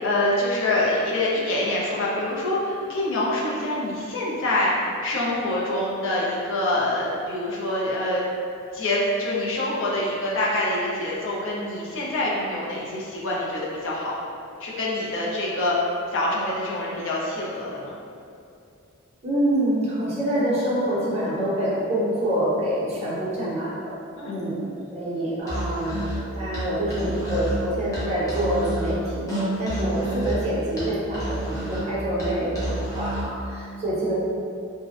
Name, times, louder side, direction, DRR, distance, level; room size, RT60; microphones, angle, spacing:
voice 1, 0.0-8.2 8.7-14.1 14.6-15.8 16.1-17.9 24.2-24.3 29.9-30.2, left 1 dB, 60° left, -5 dB, 0.5 m, -25 dB
voice 2, 19.2-24.0 24.2-26.1 26.3-34.1, right 1 dB, 30° right, -9 dB, 0.6 m, -26 dB
Musical instrument, 25.4-33.4, right 1 dB, 15° left, 0.5 m, -30 dB
2.5 x 2.1 x 2.4 m, 2.6 s
head